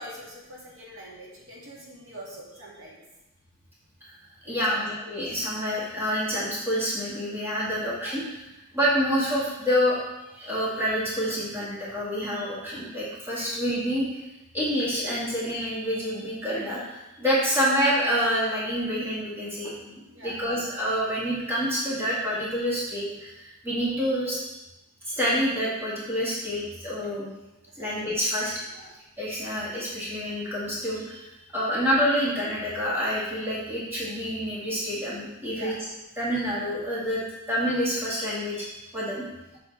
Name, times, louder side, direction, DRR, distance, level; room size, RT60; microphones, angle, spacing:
voice 1, 0.0-3.0 4.4-4.8 5.3-5.4 8.0-8.1 20.1-20.4 27.7-27.9 28.7-28.9 35.5-35.8, equal, 60° right, -6 dB, 2.2 m, -44 dB
voice 2, 4.5-8.5 8.7-10.0 10.3-14.2 14.5-24.4 25.0-27.3 27.8-28.5 29.2-35.7 36.2-37.2 37.5-39.2, equal, 10° right, -8 dB, 2.0 m, -27 dB
7.0 x 7.0 x 3.5 m, 0.97 s
head